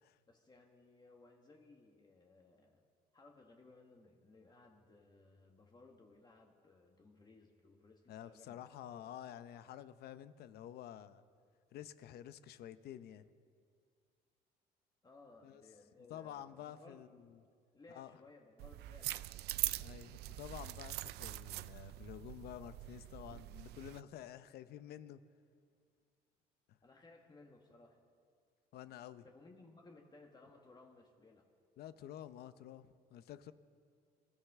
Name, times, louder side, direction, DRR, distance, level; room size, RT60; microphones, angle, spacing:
voice 1, 0.3-2.8 3.1-8.6 8.9-9.1 15.0-17.3 17.7-19.5 26.8-28.0 29.2-31.5, left 3 dB, 25° left, 1 dB, 1.5 m, -61 dB
voice 2, 8.1-11.2 11.7-13.2 15.4-15.6 16.1-17.1 17.9-18.2 19.8-25.2 26.7-26.8 28.7-29.3 31.8-33.5, left 11 dB, 70° left, 13 dB, 0.7 m, -50 dB
sound 1, 18.6-24.0, right 16 dB, 75° right, 0.4 m, -43 dB
26.0 x 13.5 x 3.6 m, 2.1 s
cardioid pair, 110°, 17 cm